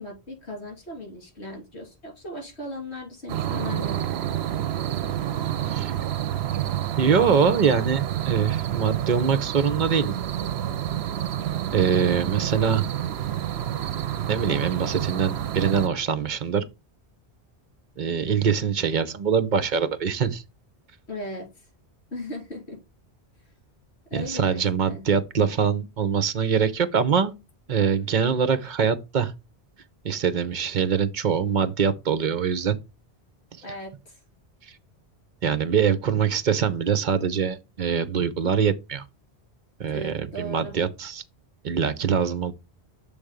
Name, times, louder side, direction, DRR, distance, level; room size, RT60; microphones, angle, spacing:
voice 1, 0.0-4.1 21.1-21.7 22.1-22.8 24.1-25.0 33.6-34.2 39.9-40.7, left 1 dB, 80° left, 3.3 m, -37 dB
sound 1, 3.3-15.9, right 11 dB, 75° right, 0.9 m, -28 dB
voice 2, 7.0-10.1 11.7-12.8 14.3-16.7 18.0-20.4 24.1-27.3 27.7-29.3 30.0-32.8 35.4-39.0 39.8-41.2 41.6-42.5, right 7 dB, 50° right, 0.8 m, -23 dB
7.2 x 3.4 x 5.0 m
omnidirectional pair, 1.1 m